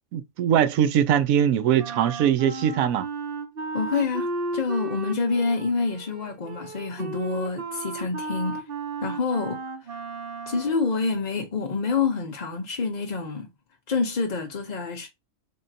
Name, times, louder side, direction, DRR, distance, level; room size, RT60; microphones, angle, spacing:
voice 1, 0.1-3.1, right 9 dB, 75° right, 1.0 m, -21 dB
Wind instrument woodwind instrument, 1.8-10.8, right 3 dB, 50° right, 0.8 m, -34 dB
voice 2, 3.7-8.6 9.0-9.9 10.5-13.5 13.9-15.1, left 4 dB, 45° left, 0.6 m, -27 dB
3.7 x 3.6 x 2.6 m
omnidirectional pair, 1.5 m